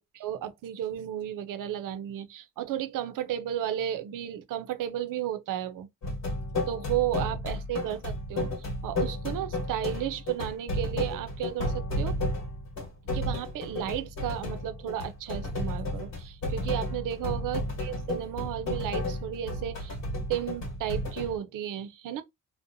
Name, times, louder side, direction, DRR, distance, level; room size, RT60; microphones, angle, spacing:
voice 1, 0.1-5.9 6.7-12.2 13.1-20.0 20.3-22.2, right 11 dB, 85° right, 0.5 m, -33 dB
sound 1, 6.0-21.4, left 1 dB, 60° left, 1.2 m, -33 dB
2.6 x 2.1 x 2.5 m
wide cardioid pair, 170°, 31 cm